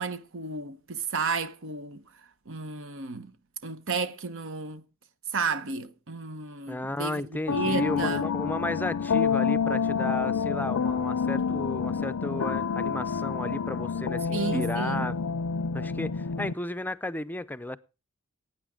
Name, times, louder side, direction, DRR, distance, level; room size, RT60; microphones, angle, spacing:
voice 1, 0.0-3.3 3.6-4.8 5.3-8.2 14.3-15.1, right 4 dB, 60° right, 1.0 m, -33 dB
voice 2, 6.7-15.2 15.7-17.8, left 1 dB, 10° left, 0.5 m, -33 dB
sound 1, 7.5-16.5, left 6 dB, 70° left, 0.5 m, -28 dB
19.0 x 9.0 x 3.7 m
head